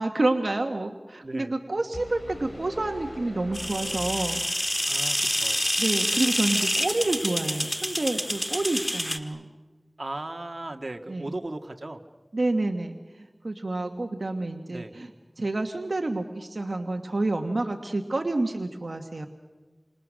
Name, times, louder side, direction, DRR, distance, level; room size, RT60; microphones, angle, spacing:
voice 1, 0.0-4.4 5.8-9.5 11.1-11.3 12.3-15.1 15.4-19.3, right 2 dB, 85° right, 4 dB, 1.3 m, -28 dB
voice 2, 1.2-1.5 4.9-5.6 10.0-12.0 14.7-14.9, right 2 dB, 65° right, 5 dB, 1.7 m, -37 dB
sound 1, 1.9-4.9, left 1 dB, 65° left, 4.2 m, -42 dB
sound 2, 3.5-9.2, equal, 15° left, 1.8 m, -27 dB
29.5 x 26.5 x 6.4 m, 1.3 s
wide cardioid pair, 40°, 0 cm